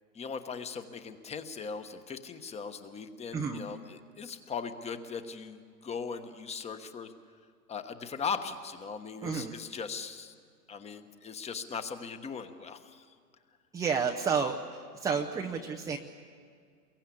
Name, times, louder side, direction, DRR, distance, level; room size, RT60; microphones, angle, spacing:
voice 1, 0.1-7.1 7.7-10.3 10.7-13.0, left 5 dB, 15° left, 9 dB, 1.2 m, -39 dB
voice 2, 3.3-3.7 9.2-9.6 13.7-16.0, right 5 dB, 5° right, 1 dB, 0.6 m, -31 dB
28.0 x 22.5 x 8.5 m, 2.2 s
hypercardioid pair, 125°, 49 cm